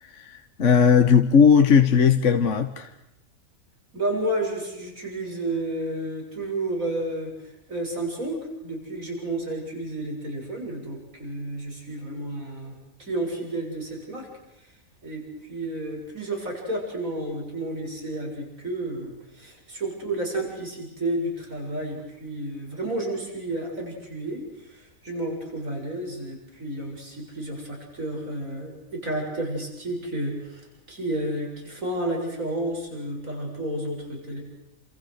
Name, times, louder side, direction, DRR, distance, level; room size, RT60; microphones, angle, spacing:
voice 1, 0.0-2.9, left 6 dB, 60° left, 7 dB, 1.5 m, -18 dB
voice 2, 3.9-14.3 14.6-14.7 15.0-34.4, right 1 dB, 70° right, 0 dB, 7.8 m, -31 dB
30.0 x 27.5 x 6.6 m, 0.87 s
omnidirectional pair, 1.5 m